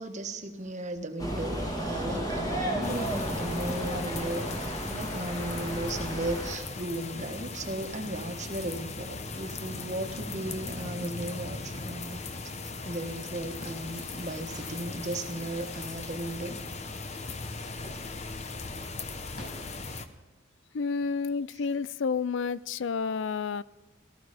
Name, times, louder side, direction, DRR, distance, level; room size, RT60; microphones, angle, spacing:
voice 1, 0.0-12.2 12.6-16.6, right 1 dB, 35° right, 1.4 m, -36 dB
sound 1, 1.2-6.6, equal, 20° left, 2.1 m, -33 dB
sound 2, 2.8-20.1, left 3 dB, 35° left, 0.9 m, -39 dB
sound 3, 12.8-20.1, left 1 dB, 50° left, 6.6 m, -54 dB
voice 2, 20.7-23.6, left 5 dB, 65° left, 0.4 m, -30 dB
18.5 x 14.0 x 5.1 m
head